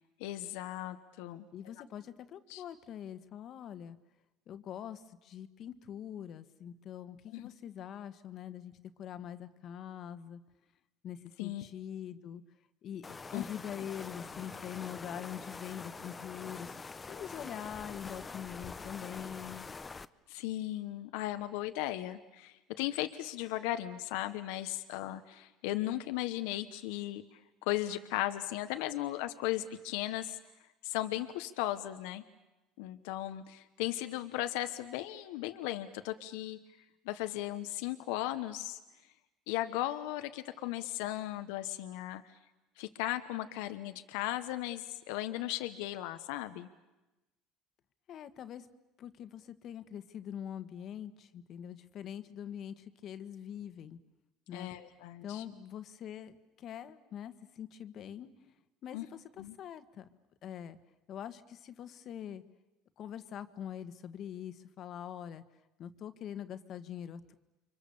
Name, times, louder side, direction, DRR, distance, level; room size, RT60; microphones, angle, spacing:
voice 1, 0.2-1.5 2.5-2.6 7.3-7.5 11.4-11.6 13.3-13.4 20.3-30.4 30.8-32.2 32.8-36.6 37.0-38.8 39.5-42.2 42.8-46.7 54.5-55.4 58.9-59.0 59.4-59.5, left 15 dB, 80° left, 10 dB, 1.0 m, -36 dB
voice 2, 1.5-4.0 4.5-10.4 11.0-12.4 12.8-19.7 48.1-48.7 49.0-54.0 54.5-54.7 55.2-58.3 58.8-60.1 60.4-60.8 61.1-62.4 63.0-65.4 65.8-67.3, left 9 dB, 50° left, 11 dB, 1.5 m, -44 dB
sound 1, 13.0-20.0, left 4 dB, 20° left, 0.8 m, -45 dB
30.0 x 24.5 x 7.1 m, 1.0 s
supercardioid pair, 100°, 0 cm